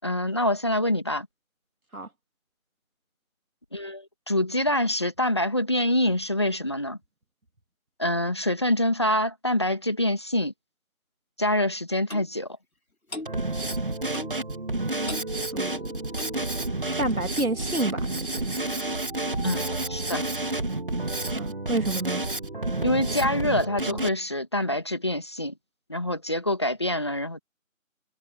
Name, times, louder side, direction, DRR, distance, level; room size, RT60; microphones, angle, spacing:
voice 1, 0.0-1.3 3.7-7.0 8.0-10.5 11.4-12.5 19.4-20.2 22.8-25.5 25.9-27.4, left 1 dB, 20° left, 2.0 m, -25 dB
Clock, 12.1-12.3 13.1-13.3 14.1-14.4 15.1-15.3 16.1-16.4 17.1-17.2, left 2 dB, 85° left, 3.6 m, -37 dB
Drum kit, 13.3-24.1, right 2 dB, 40° right, 2.3 m, -30 dB
voice 2, 15.5-15.9 17.0-18.1 18.5-18.7 21.3-22.2, right 2 dB, 85° right, 3.1 m, -29 dB
figure-of-eight pair, 170°, 41 cm